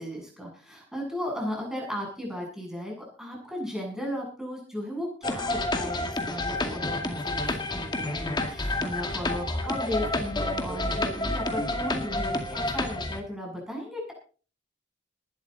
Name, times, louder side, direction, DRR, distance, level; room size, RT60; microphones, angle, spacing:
voice 1, 0.0-14.1, left 1 dB, 5° right, -1 dB, 7.9 m, -35 dB
sound 1, 5.2-13.2, left 2 dB, 25° left, 2.1 m, -29 dB
20.0 x 12.0 x 4.0 m, 0.40 s
head